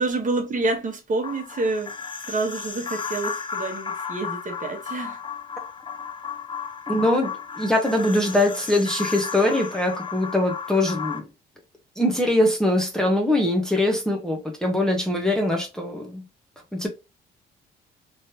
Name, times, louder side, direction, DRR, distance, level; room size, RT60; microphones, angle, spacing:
voice 1, 0.0-1.9 2.3-5.2, right 2 dB, 40° right, 1.2 m, -27 dB
sound 1, 1.2-11.2, left 6 dB, 25° left, 0.6 m, -34 dB
voice 2, 6.9-11.3 12.0-16.2 16.7-16.9, left 1 dB, 5° left, 0.9 m, -22 dB
3.2 x 3.1 x 2.8 m
cardioid pair, 90°, 20 cm